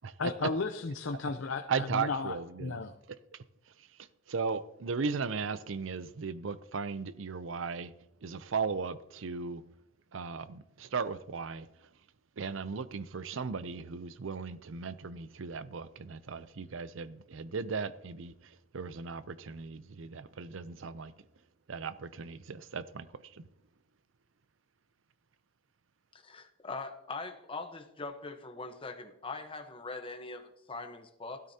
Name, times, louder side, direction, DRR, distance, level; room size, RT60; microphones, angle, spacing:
voice 1, 0.2-2.9, left 4 dB, 65° left, 0.6 m, -34 dB
voice 2, 1.7-2.8 3.3-3.4 4.0-7.9 8.2-9.6 10.1-11.7 12.4-21.1 21.7-23.5, right 5 dB, 70° right, 0.6 m, -37 dB
voice 3, 26.1-31.4, left 3 dB, 25° left, 1.1 m, -42 dB
16.5 x 12.5 x 2.9 m
head